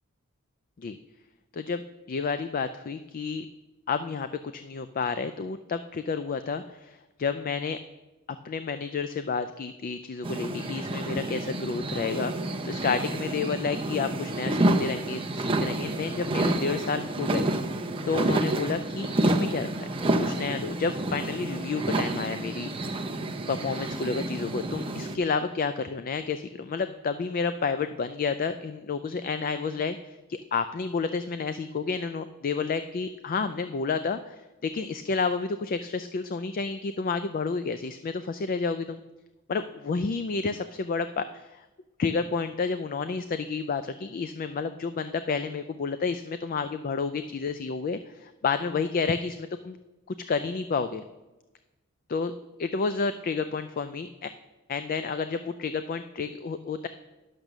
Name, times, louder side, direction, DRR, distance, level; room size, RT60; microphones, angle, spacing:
voice 1, 2.1-3.5 3.9-4.3 4.5-7.8 8.4-17.5 18.1-19.9 20.2-23.0 23.5-39.0 39.5-41.7 42.0-49.8 50.3-51.0 52.1-52.3 52.6-54.3 54.7-56.9, left 5 dB, 40° left, 10 dB, 0.4 m, -30 dB
sound 1, 10.2-25.2, right 1 dB, 25° right, 0.7 m, -29 dB
10.5 x 6.7 x 6.1 m, 1.1 s
head